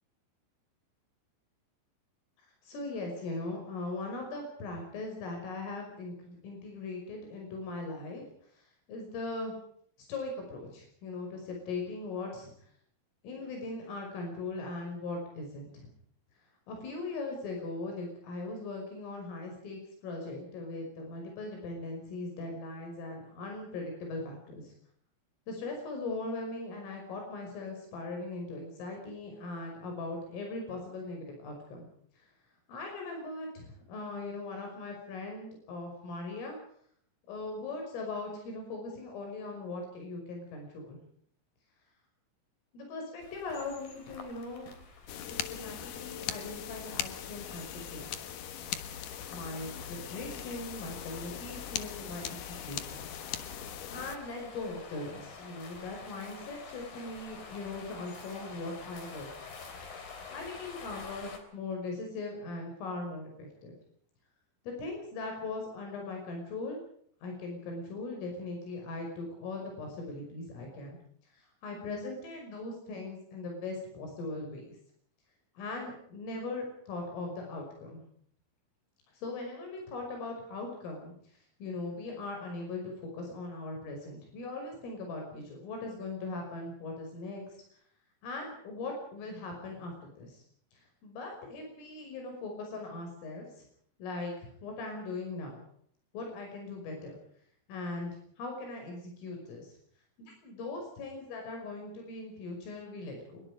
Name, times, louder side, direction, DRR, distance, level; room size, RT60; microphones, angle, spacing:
voice 1, 2.6-8.2 8.5-9.6 10.1-12.5 13.2-15.9 16.7-24.8 25.5-31.9 32.2-32.3 32.7-36.6 37.3-41.0 42.7-44.7 45.2-47.7 47.9-48.1 49.3-53.1 53.9-59.5 60.3-63.8 64.6-66.8 67.2-71.0 71.3-74.8 75.6-78.0 79.1-81.1 81.6-87.6 88.2-90.4 90.7-93.7 94.0-95.6 96.1-97.2 97.7-98.1 98.4-99.7 100.2-103.4, left 3 dB, 80° left, 2 dB, 8.2 m, -40 dB
sound 1, 43.2-61.4, left 4 dB, 45° left, 5.0 m, -49 dB
sound 2, 45.1-54.2, left 10 dB, 65° left, 2.1 m, -40 dB
26.0 x 22.0 x 5.0 m, 0.63 s
omnidirectional pair, 5.7 m